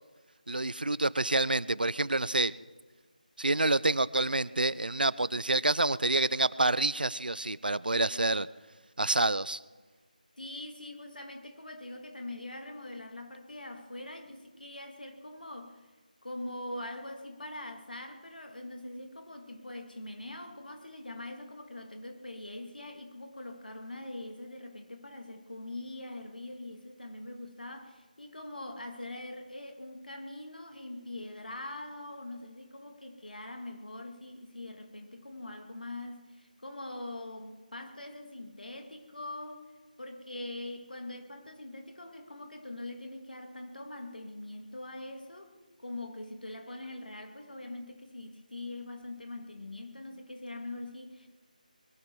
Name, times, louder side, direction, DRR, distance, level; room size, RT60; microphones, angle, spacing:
voice 1, 0.5-2.5 3.4-8.5 9.0-9.6, right 2 dB, 90° right, 0.6 m, -28 dB
voice 2, 10.4-15.8 16.2-39.7 40.0-51.3, left 2 dB, 85° left, 2.4 m, -43 dB
22.0 x 13.0 x 4.7 m
figure-of-eight pair, 165°, 5 cm